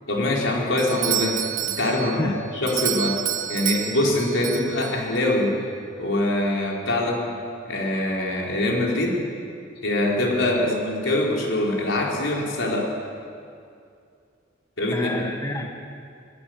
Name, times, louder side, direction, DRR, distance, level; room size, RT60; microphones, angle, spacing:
voice 1, 0.1-3.2 3.5-5.5 6.0-7.2 7.6-9.2 9.8-12.9 14.8-15.3, left 1 dB, 80° left, -2 dB, 4.6 m, -24 dB
Doorbell, 0.8-5.2, right 11 dB, 75° right, 1.5 m, -29 dB
voice 2, 2.0-2.4 10.6-10.7 14.9-15.7, left 1 dB, 15° left, 3 dB, 1.2 m, -30 dB
22.5 x 15.5 x 8.0 m, 2.4 s
head